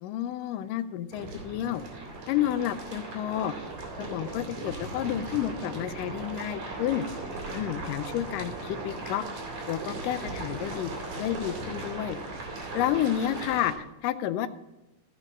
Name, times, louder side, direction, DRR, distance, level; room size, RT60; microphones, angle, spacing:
voice 1, 0.0-1.8 2.3-3.5 4.0-7.1 7.5-9.2 9.7-10.9 11.2-12.2 12.7-13.7 14.0-14.5, left 12 dB, 85° left, 11 dB, 2.3 m, -30 dB
sound 1, 1.1-13.7, right 2 dB, 70° right, 3.7 m, -38 dB
15.5 x 5.3 x 6.1 m, 0.93 s
omnidirectional pair, 3.7 m